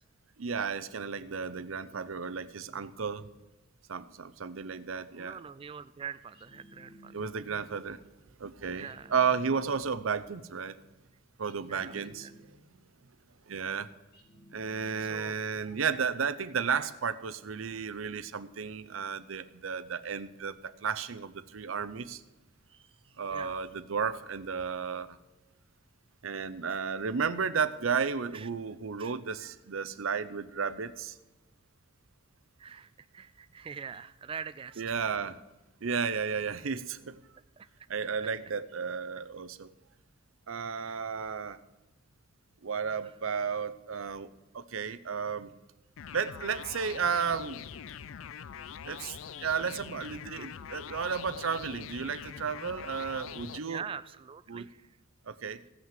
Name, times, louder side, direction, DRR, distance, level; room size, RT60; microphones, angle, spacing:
voice 1, 0.4-3.3 3.9-5.4 7.1-8.0 8.4-10.8 11.4-12.3 13.5-13.9 14.5-22.2 23.2-25.2 26.2-31.2 34.8-35.4 35.8-37.2 37.9-39.7 40.5-41.6 42.6-45.5 46.1-47.6 48.9-53.9 54.5-54.7 55.3-55.6, right 6 dB, 85° right, 12 dB, 0.7 m, -33 dB
voice 2, 5.2-7.1 8.8-9.1 11.7-12.1 15.1-15.4 22.7-22.8 23.3-23.6 28.3-28.5 29.0-29.1 32.6-32.9 33.1-34.8 37.6-37.7 53.7-54.8, right 6 dB, 25° right, 13 dB, 0.3 m, -43 dB
sound 1, 6.3-7.7 8.8-10.2 11.4-12.8 14.1-15.5, equal, 50° left, 2.1 m, -56 dB
sound 2, 46.0-53.6, left 8 dB, 80° left, 0.4 m, -44 dB
16.0 x 5.8 x 7.5 m, 1.1 s
head